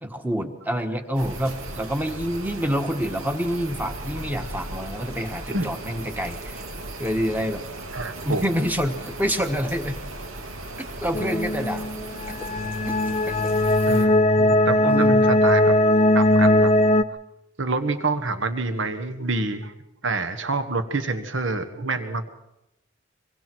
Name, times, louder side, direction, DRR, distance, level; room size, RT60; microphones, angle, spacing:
voice 1, 0.0-6.6 7.0-7.6 8.2-10.0 11.0-11.9 12.3-12.4 13.3-13.4 14.8-15.2, equal, 10° right, 6 dB, 1.4 m, -27 dB
sound 1, 1.1-14.1, right 2 dB, 85° right, 2.5 m, -37 dB
voice 2, 7.9-8.4 13.8-15.7 16.1-16.7 17.1-17.2 17.6-19.7 20.0-22.3, right 3 dB, 60° right, 9 dB, 1.5 m, -27 dB
sound 2, 11.1-17.0, left 1 dB, 30° left, 0.6 m, -19 dB
25.5 x 23.0 x 4.6 m, 0.87 s
head